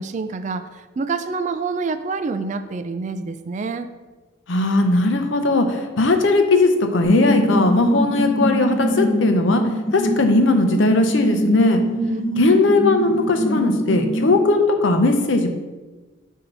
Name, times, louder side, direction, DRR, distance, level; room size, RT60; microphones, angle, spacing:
voice 1, 0.0-3.9 12.0-12.2 12.5-12.6, right 4 dB, 35° right, 10 dB, 0.3 m, -27 dB
voice 2, 4.5-9.6 9.9-11.8 12.4-15.5, left 2 dB, 70° left, 6 dB, 0.7 m, -18 dB
sound 1, 7.0-14.4, equal, 20° left, 0.5 m, -24 dB
6.9 x 2.8 x 5.4 m, 1.2 s
head